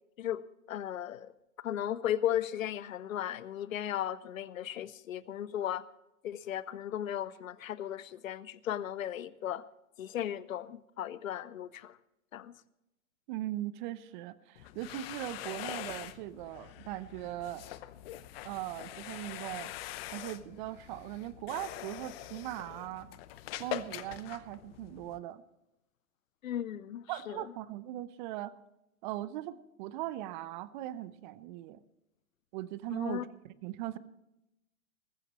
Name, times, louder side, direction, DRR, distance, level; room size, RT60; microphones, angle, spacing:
voice 1, 0.7-1.3 1.6-5.8 6.2-9.6 10.0-12.0 12.3-12.5 26.4-27.5 32.9-33.2, left 11 dB, 70° left, 0.7 m, -36 dB
voice 2, 13.3-17.7 18.4-19.7 20.1-23.1 23.6-25.4 27.1-28.5 29.0-31.8 32.5-34.0, right 14 dB, 35° right, 0.8 m, -39 dB
sound 1, 14.6-25.2, left 14 dB, 45° left, 1.0 m, -44 dB
19.5 x 15.0 x 3.1 m
hypercardioid pair, 115°, 42 cm